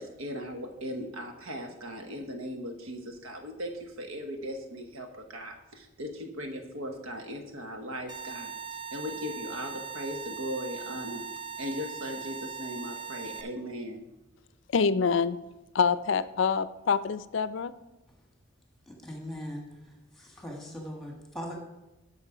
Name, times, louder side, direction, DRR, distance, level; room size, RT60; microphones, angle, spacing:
voice 1, 0.0-11.3 11.6-14.0, equal, 85° right, 5 dB, 1.1 m, -38 dB
sound 1, 8.1-13.4, right 6 dB, 25° right, 1.0 m, -40 dB
voice 2, 14.7-15.4 15.7-17.7, left 5 dB, 65° left, 15 dB, 0.4 m, -26 dB
voice 3, 18.9-19.6 20.2-21.6, equal, ahead, 1 dB, 1.5 m, -39 dB
12.0 x 5.6 x 4.9 m, 0.98 s
head